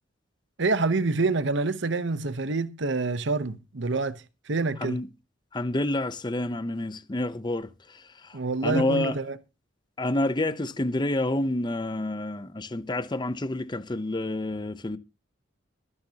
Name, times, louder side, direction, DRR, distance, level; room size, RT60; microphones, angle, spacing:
voice 1, 0.6-5.0 8.3-9.4, right 3 dB, 65° right, 0.9 m, -27 dB
voice 2, 5.5-7.7 8.6-9.1 10.0-15.0, left 1 dB, 25° left, 0.7 m, -28 dB
22.0 x 9.7 x 2.9 m
head